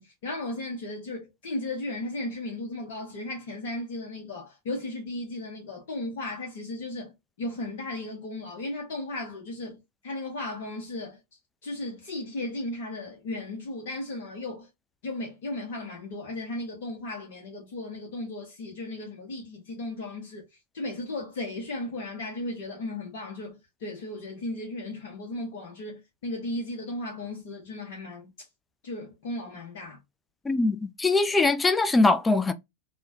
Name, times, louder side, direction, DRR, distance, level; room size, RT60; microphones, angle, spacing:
voice 1, 0.0-7.1 7.4-11.2 11.6-14.7 15.0-20.4 20.7-28.3 28.8-30.0, left 2 dB, 55° left, 0.8 m, -35 dB
voice 2, 30.5-32.5, left 3 dB, 10° left, 0.3 m, -22 dB
3.1 x 2.1 x 2.6 m
figure-of-eight pair, 90°, 0 cm